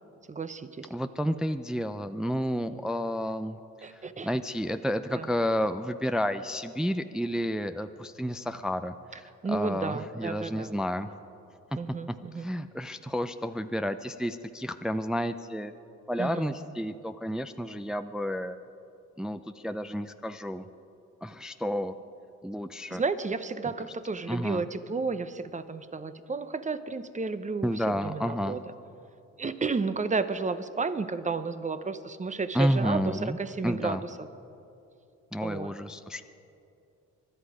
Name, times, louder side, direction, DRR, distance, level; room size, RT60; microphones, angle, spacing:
voice 1, 0.3-0.9 3.8-4.4 5.1-5.3 9.4-10.8 11.8-12.4 16.2-16.4 22.9-28.6 29.4-34.3 35.4-35.7, right 4 dB, 25° right, 12 dB, 0.9 m, -32 dB
voice 2, 0.9-11.1 11.7-11.8 12.1-15.7 16.1-18.6 19.2-20.6 21.2-22.0 22.4-23.0 23.8-23.9 24.3-24.6 27.6-28.6 32.5-33.4 33.6-34.0 35.3-36.2, equal, ahead, 9 dB, 0.5 m, -31 dB
24.0 x 11.5 x 5.0 m, 2.7 s
cardioid pair, 90°, 30 cm